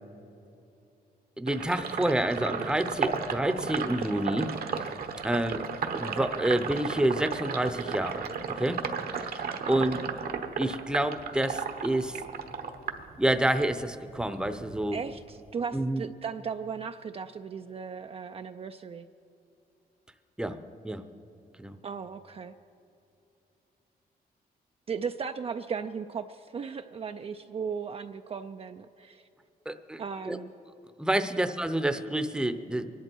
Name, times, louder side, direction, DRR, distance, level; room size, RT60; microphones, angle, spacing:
voice 1, 1.4-4.5 5.2-5.6 5.9-8.2 8.6-8.8 9.7-10.0 10.6-12.2 13.2-15.0 15.7-16.0 20.4-20.6 20.8-21.0 21.6-21.7 29.7-30.0 30.3-30.4 31.0-32.9, right 1 dB, 5° right, 9 dB, 0.7 m, -28 dB
Sink (filling or washing), 1.5-13.7 14.1-15.5, right 6 dB, 70° right, 1.1 m, -34 dB
voice 2, 9.6-10.1 14.9-19.1 21.8-22.5 24.9-29.2 30.0-30.5 31.3-31.4, right 6 dB, 35° right, 7 dB, 0.4 m, -37 dB
24.5 x 11.0 x 4.6 m, 2.9 s
cardioid pair, 105°, 16 cm